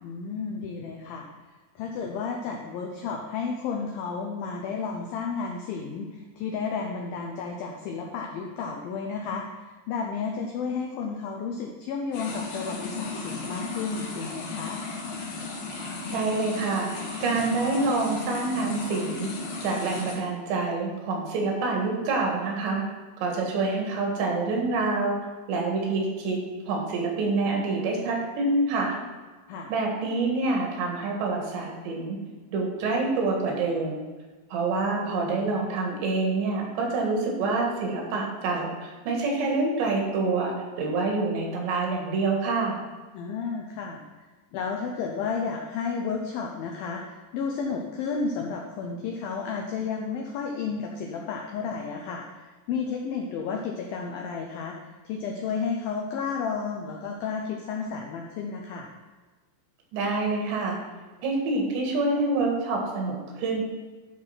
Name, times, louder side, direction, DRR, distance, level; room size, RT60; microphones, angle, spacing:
voice 1, 0.0-1.2 1.8-9.4 9.9-14.8 29.5-29.7 35.0-35.5 43.1-44.0 44.5-52.2 52.7-54.8 55.0-58.9, left 5 dB, 85° left, 1 dB, 2.0 m, -32 dB
sound 1, 12.1-20.2, left 4 dB, 60° left, 3.2 m, -35 dB
voice 2, 15.7-16.9 17.2-19.3 19.6-22.9 23.2-25.2 25.5-26.4 26.7-29.0 29.7-32.2 32.5-34.0 34.5-42.8 59.9-60.8 61.2-63.6, right 3 dB, 75° right, 0 dB, 3.8 m, -27 dB
12.5 x 4.2 x 5.7 m, 1.3 s
omnidirectional pair, 5.2 m